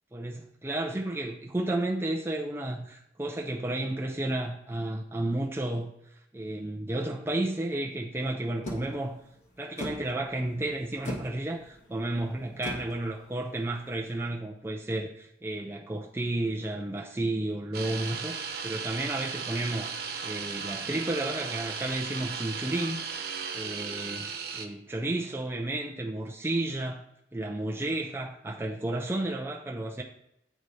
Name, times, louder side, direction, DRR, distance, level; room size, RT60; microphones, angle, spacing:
voice 1, 0.1-5.9 6.3-9.2 9.6-19.9 20.2-23.0 23.5-27.0 27.3-30.0, right 1 dB, 15° right, -1 dB, 0.6 m, -32 dB
sound 1, 8.6-14.2, left 1 dB, 40° left, 1.3 m, -42 dB
sound 2, 17.7-24.7, right 6 dB, 60° right, 0.7 m, -36 dB
8.9 x 3.3 x 4.0 m, 0.78 s
head